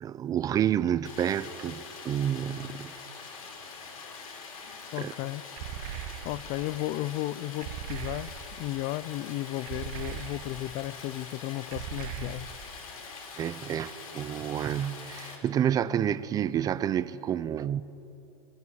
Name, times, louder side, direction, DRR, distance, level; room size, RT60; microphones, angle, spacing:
voice 1, 0.0-2.9 5.0-5.1 13.4-17.8, right 10 dB, 20° right, 0.5 m, -29 dB
Stream, 1.0-15.4, left 4 dB, 85° left, 6.0 m, -44 dB
voice 2, 4.9-5.4 6.2-12.5, left 16 dB, 35° left, 0.6 m, -34 dB
sound 1, 5.6-6.6 7.6-8.7 9.7-10.7 11.7-12.8, right 11 dB, 45° right, 1.3 m, -40 dB
22.0 x 17.0 x 9.7 m
supercardioid pair, 145°, 18 cm